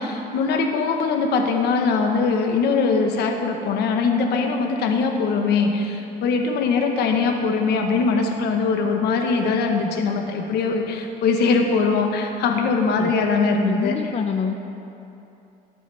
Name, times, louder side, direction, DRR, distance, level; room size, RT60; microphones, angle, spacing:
voice 1, 0.0-14.0, left 4 dB, 75° left, 3 dB, 1.3 m, -21 dB
voice 2, 13.6-14.5, left 6 dB, 40° left, 5 dB, 0.6 m, -25 dB
19.5 x 8.5 x 3.5 m, 2.9 s
cardioid pair, 110°, 17 cm